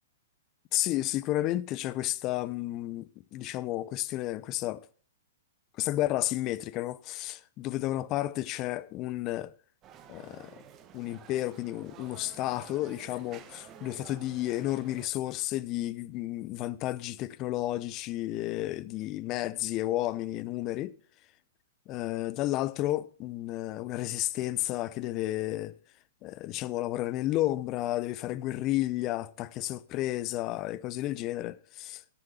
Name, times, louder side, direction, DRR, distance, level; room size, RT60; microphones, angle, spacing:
voice 1, 0.7-4.9 5.8-9.5 10.1-10.5 10.9-21.0 21.9-25.7 26.2-32.0, left 15 dB, 35° left, 0.6 m, -32 dB
sound 1, 9.8-15.1, right 9 dB, 30° right, 1.2 m, -51 dB
10.0 x 6.9 x 7.1 m
figure-of-eight pair, 110°, 0 cm